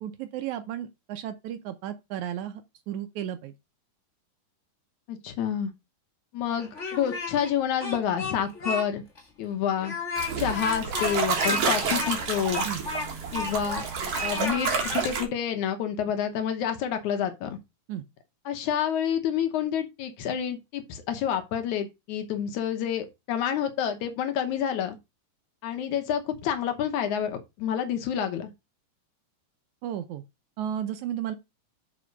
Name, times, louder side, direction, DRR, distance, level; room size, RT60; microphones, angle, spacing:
voice 1, 0.0-2.6 2.9-3.5 12.7-12.8 17.9-18.0 29.8-30.2 30.6-31.4, right 10 dB, 75° right, 1.8 m, -33 dB
voice 2, 5.1-5.7 6.3-9.0 9.4-10.0 10.4-12.7 13.3-13.8 14.2-17.5 18.5-25.0 25.6-28.5, left 9 dB, 70° left, 2.2 m, -28 dB
Speech, 6.6-7.5 7.8-8.8 9.2-9.3 9.8-13.9 14.1-15.1, left 3 dB, 30° left, 1.5 m, -33 dB
sound 1, 10.2-15.2, right 5 dB, 55° right, 2.5 m, -29 dB
6.8 x 4.8 x 5.1 m
omnidirectional pair, 3.8 m